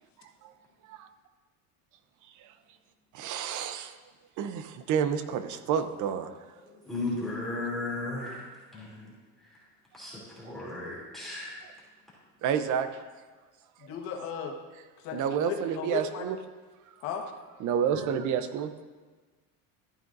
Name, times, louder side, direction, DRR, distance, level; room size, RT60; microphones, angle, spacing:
voice 1, 3.1-4.0 4.4-6.3 12.4-12.9 15.1-16.4 17.6-18.7, right 8 dB, 45° right, 11 dB, 0.6 m, -29 dB
voice 2, 6.6-8.4 8.7-9.1 9.9-11.6, left 2 dB, ahead, -8 dB, 2.7 m, -35 dB
voice 3, 13.8-14.5 15.0-16.2 17.0-17.2, left 7 dB, 90° left, 1 dB, 1.6 m, -35 dB
13.0 x 9.3 x 2.6 m, 1.4 s
cardioid pair, 150°, 42 cm